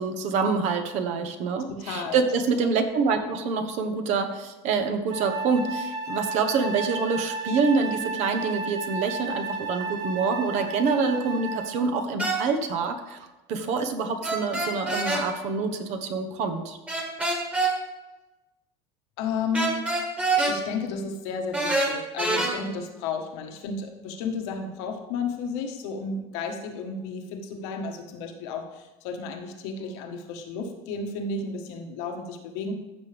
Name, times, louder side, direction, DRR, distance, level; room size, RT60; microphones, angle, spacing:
voice 1, 0.0-16.8, right 4 dB, 60° right, 6 dB, 1.2 m, -26 dB
voice 2, 1.8-2.2 19.2-19.8 20.5-32.8, left 4 dB, 80° left, 3 dB, 1.5 m, -32 dB
Wind instrument woodwind instrument, 5.1-11.9, right 3 dB, 30° right, 1.3 m, -33 dB
sound 1, 12.2-12.4 14.2-15.2 16.9-17.7 19.5-20.6 21.5-22.5, right 2 dB, 10° right, 1.7 m, -25 dB
14.5 x 6.3 x 3.5 m, 1.1 s
cardioid pair, 135°, 13 cm